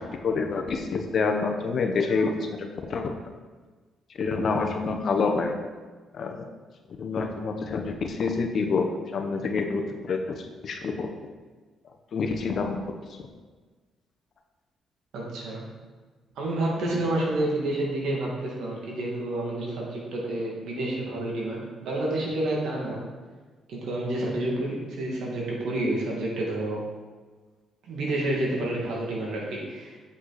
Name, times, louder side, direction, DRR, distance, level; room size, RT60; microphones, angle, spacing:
voice 1, 0.1-3.1 4.2-5.5 6.1-6.5 7.0-10.2 10.6-11.1 12.1-12.8, left 4 dB, 55° left, 4 dB, 1.0 m, -27 dB
voice 2, 15.1-15.6 16.4-23.0 23.7-26.8 27.8-29.9, right 1 dB, 75° right, -3 dB, 2.4 m, -29 dB
8.0 x 6.0 x 4.2 m, 1.4 s
cardioid pair, 90°, 0 cm